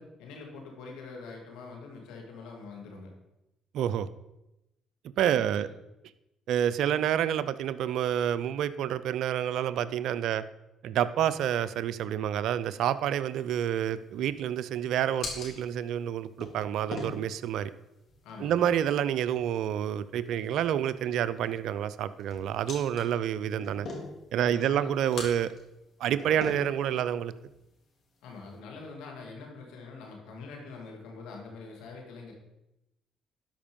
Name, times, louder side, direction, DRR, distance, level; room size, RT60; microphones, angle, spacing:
voice 1, 0.0-3.1 5.3-5.7 6.8-7.0 18.2-18.6 24.4-25.0 28.2-32.3, left 4 dB, 80° left, 1 dB, 2.5 m, -44 dB
voice 2, 3.7-4.1 5.2-5.7 6.5-10.4 10.8-17.7 18.4-23.9 24.3-25.5 26.0-27.3, right 10 dB, 75° right, 15 dB, 0.5 m, -28 dB
sound 1, 13.2-28.6, left 3 dB, 55° left, 3.2 m, -45 dB
12.5 x 5.3 x 5.4 m, 0.92 s
supercardioid pair, 65°, 0 cm